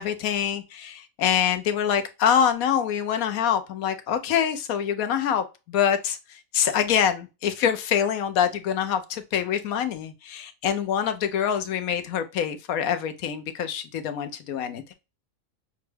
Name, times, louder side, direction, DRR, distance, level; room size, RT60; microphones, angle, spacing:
voice 1, 0.0-14.9, left 8 dB, 90° left, 1.1 m, -25 dB
6.0 x 2.3 x 3.2 m
omnidirectional pair, 1.4 m